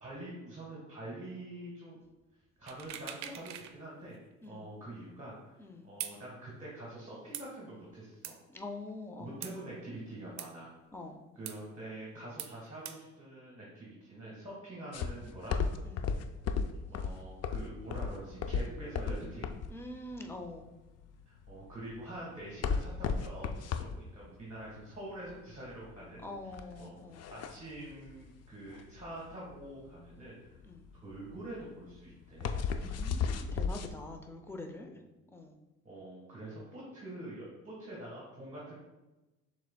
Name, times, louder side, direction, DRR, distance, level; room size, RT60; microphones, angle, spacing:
voice 1, 0.0-2.0 2.6-4.2 4.4-5.5 5.8-8.4 9.2-10.7 11.3-15.7 16.1-16.2 16.9-19.5 21.3-26.2 26.5-26.9 27.3-30.6 31.0-32.6 35.0-35.1 35.8-38.8, right 1 dB, 25° right, -5 dB, 1.4 m, -45 dB
sound 1, 2.7-3.7 4.1-4.2 6.0-6.2 7.3-7.5 8.2-8.4 9.4-9.5 10.4-10.5 11.5-11.6 12.4-12.5 12.9-13.0, right 10 dB, 65° right, 0.5 m, -42 dB
voice 2, 5.6-5.9 8.5-9.4 10.9-11.2 15.8-16.1 19.7-20.7 26.2-27.3 29.3-29.5 30.6-30.9 32.8-34.9 35.3-35.6, left 2 dB, 10° left, 3 dB, 0.6 m, -45 dB
sound 2, 14.9-33.9, left 5 dB, 55° left, 0.4 m, -35 dB
6.4 x 3.5 x 2.2 m, 1.1 s
cardioid pair, 90°, 30 cm